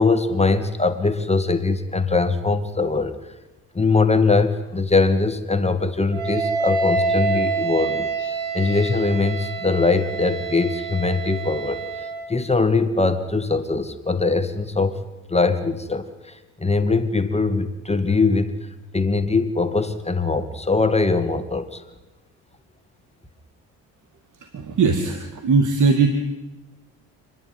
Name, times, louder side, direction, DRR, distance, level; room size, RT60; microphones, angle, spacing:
voice 1, 0.0-3.1 3.7-15.0 15.3-18.5 18.9-21.8, left 3 dB, 15° left, 9 dB, 2.2 m, -21 dB
Wind instrument woodwind instrument, 6.1-12.3, right 4 dB, 90° right, 3.8 m, -27 dB
voice 2, 24.4-26.2, right 4 dB, 55° right, 6 dB, 2.3 m, -20 dB
28.5 x 11.5 x 9.6 m, 1.1 s
supercardioid pair, 60°, 37 cm